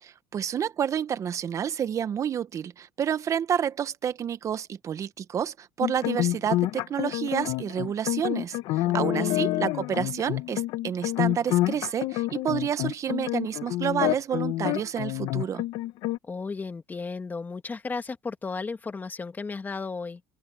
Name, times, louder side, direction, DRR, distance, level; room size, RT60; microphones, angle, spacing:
voice 1, 0.0-15.6, right 8 dB, 40° right, 1.2 m, -29 dB
sound 1, 5.8-16.2, left 16 dB, 75° left, 1.3 m, -28 dB
voice 2, 8.8-9.6 16.3-20.2, left 4 dB, 25° left, 2.7 m, -35 dB
supercardioid pair, 105°, 8 cm